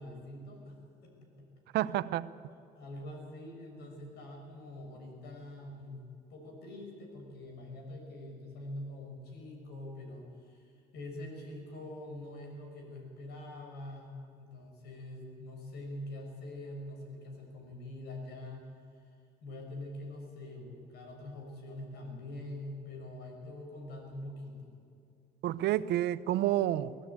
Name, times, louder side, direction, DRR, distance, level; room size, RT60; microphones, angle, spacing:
voice 1, 0.0-1.8 2.7-5.9 6.3-18.7 19.4-24.7, left 1 dB, 75° left, 2 dB, 6.5 m, -45 dB
voice 2, 1.7-2.3 25.4-26.9, right 13 dB, 75° right, 15 dB, 0.8 m, -29 dB
23.0 x 16.0 x 8.7 m, 2.4 s
cardioid pair, 110°, 17 cm